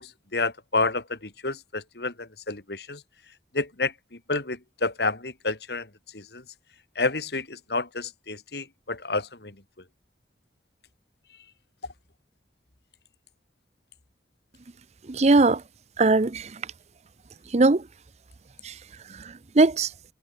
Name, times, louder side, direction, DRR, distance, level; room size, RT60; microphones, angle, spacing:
voice 1, 0.0-3.0 3.5-6.4 7.0-9.6, left 3 dB, 65° left, 2.6 m, -30 dB
voice 2, 15.1-15.6 16.0-16.6 17.5-17.8 18.6-18.7 19.2-19.9, right 3 dB, 40° right, 0.6 m, -20 dB
head